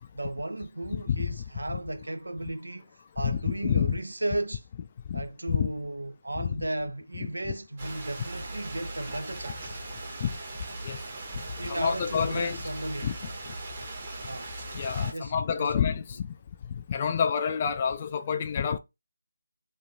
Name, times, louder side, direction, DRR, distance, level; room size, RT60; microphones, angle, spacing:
voice 1, 0.1-4.7 5.1-9.8 11.6-13.2 14.3-14.6 15.1-16.2, right 1 dB, 85° right, 0.4 m, -35 dB
voice 2, 0.9-1.4 3.4-4.0 5.1-5.7 6.4-6.5 10.2-10.3 10.8-11.0 11.7-12.6 13.0-13.2 14.7-16.2 16.9-18.8, left 7 dB, 30° left, 0.3 m, -28 dB
sound 1, 7.8-15.1, right 2 dB, 30° right, 0.9 m, -39 dB
3.1 x 2.4 x 2.6 m
figure-of-eight pair, 160°, 0 cm